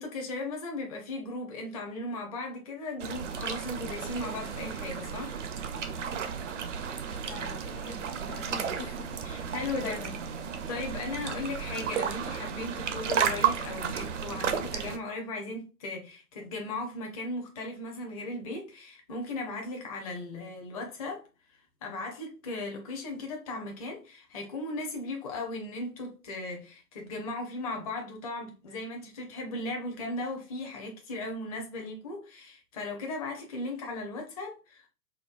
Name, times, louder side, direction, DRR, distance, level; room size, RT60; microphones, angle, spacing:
voice 1, 0.0-5.4 9.2-10.0 10.7-21.2 21.8-34.9, left 2 dB, 25° left, 0.6 m, -37 dB
sound 1, 3.0-15.0, right 7 dB, 50° right, 0.5 m, -33 dB
voice 2, 7.2-9.5 9.8-10.2, left 6 dB, 80° left, 0.7 m, -45 dB
4.3 x 2.0 x 2.4 m
figure-of-eight pair, 120°, 48 cm